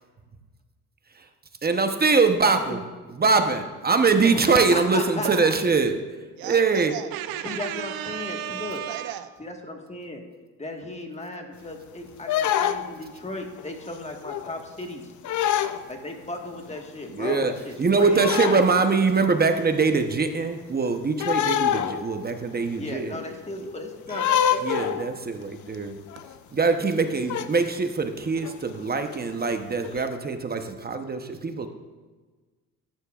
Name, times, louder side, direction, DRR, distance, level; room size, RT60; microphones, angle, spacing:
voice 1, 1.6-2.8 3.2-6.0 6.4-6.9 17.1-17.5 17.8-23.1 24.6-25.9 26.5-31.7, right 4 dB, 25° right, 6 dB, 0.9 m, -23 dB
voice 2, 2.5-2.8 4.2-5.5 7.4-8.8 9.4-10.2 10.6-15.0 15.9-18.3 22.8-25.0, left 2 dB, 20° left, 3 dB, 1.5 m, -36 dB
voice 3, 6.4-9.4 26.2-26.3, right 11 dB, 85° right, 11 dB, 0.6 m, -33 dB
sound 1, 12.3-13.1 13.6-13.9 14.2-14.6 15.2-15.8 16.4-16.5 16.8-16.9 17.2-17.5 18.2-18.7 19.4-19.5 21.2-22.2 22.5-22.6 24.1-25.2 25.7-25.8 26.1-26.3 27.3-27.5 28.4-28.5 29.1-29.2 29.8-30.0, left 10 dB, 55° left, 0.6 m, -26 dB
14.0 x 10.0 x 2.4 m, 1.4 s
cardioid pair, 90°, 35 cm